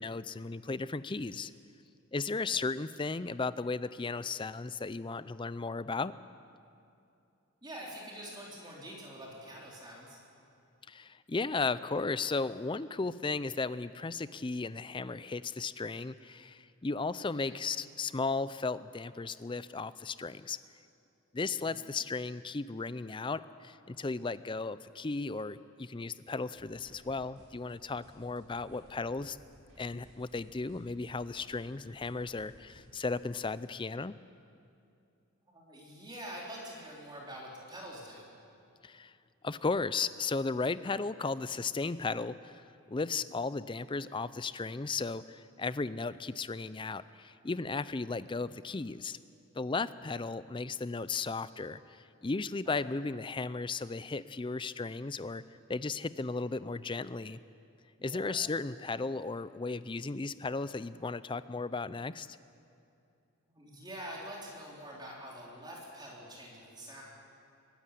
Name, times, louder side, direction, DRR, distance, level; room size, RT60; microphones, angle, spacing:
voice 1, 0.0-1.5 2.1-6.1 10.9-20.6 21.3-29.4 29.8-34.1 38.8-39.1 39.4-49.2 49.6-55.4 55.7-57.4 58.0-62.4, left 3 dB, 20° left, 15 dB, 0.4 m, -35 dB
voice 2, 7.6-10.2 17.3-17.6 21.6-21.9 28.2-28.4 35.5-38.3 43.1-43.4 49.8-50.2 52.6-52.8 58.0-58.4 63.5-67.0, equal, 20° right, -4 dB, 4.1 m, -46 dB
sound 1, 26.5-33.4, equal, 65° right, 7.0 m, -60 dB
23.0 x 13.5 x 10.0 m, 2.6 s
head